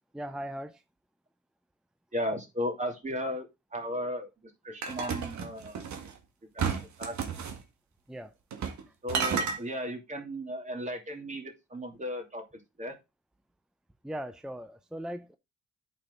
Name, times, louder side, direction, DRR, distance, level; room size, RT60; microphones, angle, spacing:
voice 1, 0.1-0.8 8.1-8.3 14.0-15.4, equal, ahead, 0.5 m, -38 dB
voice 2, 2.1-5.8 6.5-6.7 7.0-7.5 9.0-13.0, equal, 25° right, 2.8 m, -36 dB
sound 1, 4.8-6.1 6.6-7.6 8.5-8.8 9.1-9.6, right 6 dB, 70° right, 1.8 m, -32 dB
8.6 x 6.1 x 3.9 m
cardioid pair, 90°, 30 cm